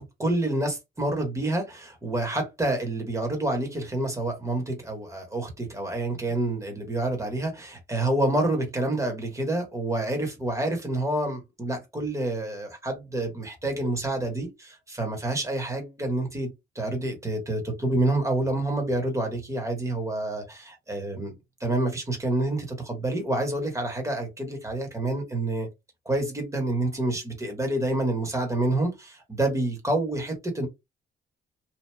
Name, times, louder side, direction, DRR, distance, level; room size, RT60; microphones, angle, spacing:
voice 1, 0.0-21.3 21.6-25.7 26.0-30.7, right 2 dB, 15° right, 1.3 m, -28 dB
3.0 x 2.5 x 2.2 m
cardioid pair, 90°, 20 cm